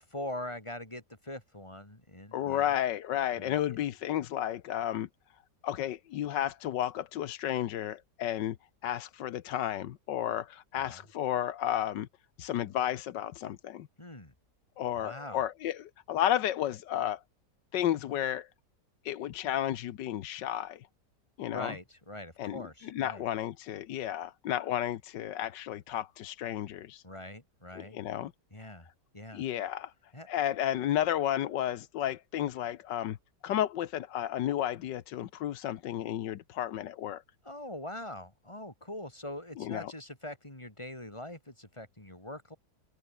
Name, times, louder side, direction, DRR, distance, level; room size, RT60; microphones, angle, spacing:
voice 1, 0.0-2.7 3.3-3.6 10.9-11.0 14.0-14.3 14.9-15.5 21.5-23.2 27.0-28.0 28.5-28.9 29.1-29.4 30.1-30.3 37.4-42.6, left 1 dB, 15° left, 3.1 m, -43 dB
voice 2, 2.3-5.1 5.6-8.6 8.8-12.1 12.4-13.9 14.8-17.2 17.7-18.5 19.0-20.8 21.4-21.7 22.4-27.0 27.8-28.3 29.3-29.9 30.3-33.2 33.4-37.2 39.6-39.9, left 11 dB, 85° left, 1.5 m, -32 dB
omnidirectional pair, 1.9 m